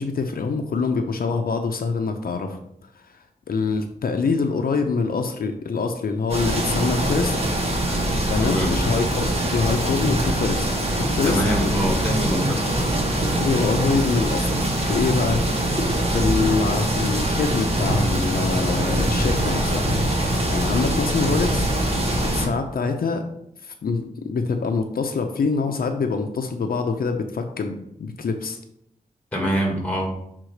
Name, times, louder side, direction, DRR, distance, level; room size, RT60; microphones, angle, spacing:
voice 1, 0.0-2.6 3.0-3.2 3.5-7.3 8.3-10.7 11.0-11.4 13.4-15.4 16.1-19.8 20.5-21.7 22.2-23.3 23.6-28.6, left 4 dB, 75° left, 5 dB, 0.6 m, -25 dB
sound 1, 6.3-22.5, right 1 dB, 40° right, 1.6 m, -23 dB
voice 2, 8.4-8.7 11.2-12.6 29.3-30.1, equal, 10° left, -1 dB, 2.0 m, -24 dB
6.4 x 3.7 x 4.8 m, 0.76 s
wide cardioid pair, 120°, 15 cm